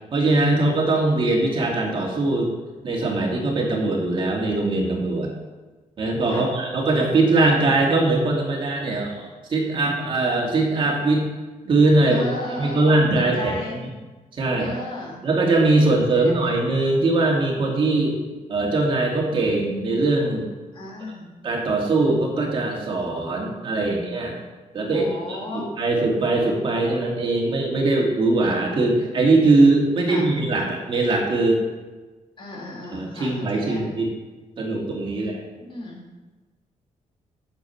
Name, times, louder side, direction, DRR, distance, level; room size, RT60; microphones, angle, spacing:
voice 1, 0.1-2.5 2.8-5.3 6.0-11.2 11.6-12.2 12.6-13.8 14.3-14.7 15.2-18.2 18.5-20.5 21.4-24.4 24.7-31.6 32.9-34.1 34.6-35.4, right 2 dB, 40° right, -1 dB, 2.1 m, -21 dB
voice 2, 12.0-13.8 14.6-15.3 15.8-16.5 20.7-21.3 24.9-25.8 30.1-30.3 32.4-33.9 35.1-36.0, left 2 dB, 40° left, -3 dB, 2.8 m, -35 dB
9.0 x 7.8 x 5.7 m, 1.2 s
wide cardioid pair, 180°, 13 cm